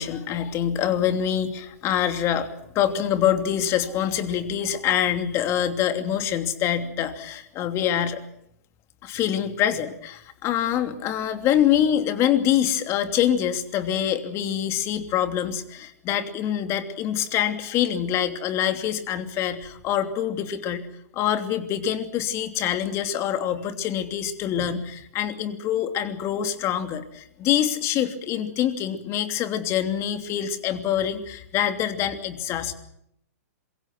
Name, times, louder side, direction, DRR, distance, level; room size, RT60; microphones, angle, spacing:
voice 1, 0.0-2.5 2.7-8.2 9.0-20.9 21.1-32.7, left 10 dB, 30° left, 8 dB, 2.9 m, -25 dB
26.5 x 23.5 x 6.2 m, 0.75 s
hypercardioid pair, 125°, 9 cm